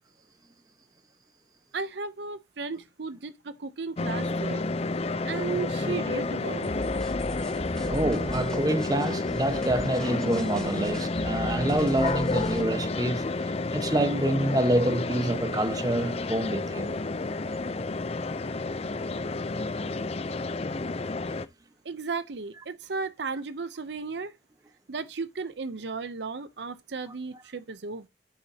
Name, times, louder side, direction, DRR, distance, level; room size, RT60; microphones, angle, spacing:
voice 1, 1.7-4.6 5.2-6.7 21.8-24.4 24.9-28.1, right 4 dB, 65° right, 0.7 m, -35 dB
sound 1, 4.0-21.5, left 3 dB, 35° left, 0.5 m, -30 dB
sound 2, 6.6-12.6, equal, 5° left, 2.5 m, -39 dB
voice 2, 7.9-13.3 13.7-16.9, right 1 dB, 20° right, 1.1 m, -27 dB
10.5 x 8.5 x 2.8 m
head